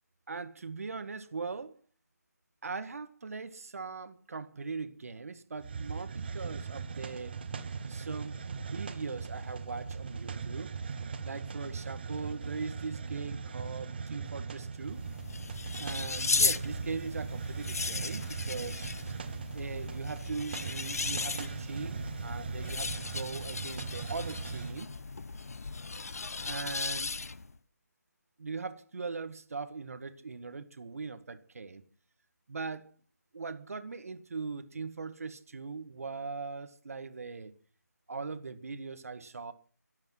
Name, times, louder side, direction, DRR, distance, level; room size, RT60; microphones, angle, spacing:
voice 1, 0.3-1.8 2.6-7.3 7.9-10.7 11.2-15.0 15.8-19.0 19.5-24.9 26.5-27.1 28.4-31.8 32.5-32.9 33.3-37.5 38.1-39.5, right 4 dB, 55° right, 11 dB, 1.9 m, -40 dB
Hiss, 5.6-24.8, right 5 dB, 35° right, 1.5 m, -39 dB
sound 1, 14.8-27.6, left 4 dB, 55° left, 1.0 m, -36 dB
25.0 x 9.0 x 5.9 m, 0.41 s
figure-of-eight pair, 165°, 9 cm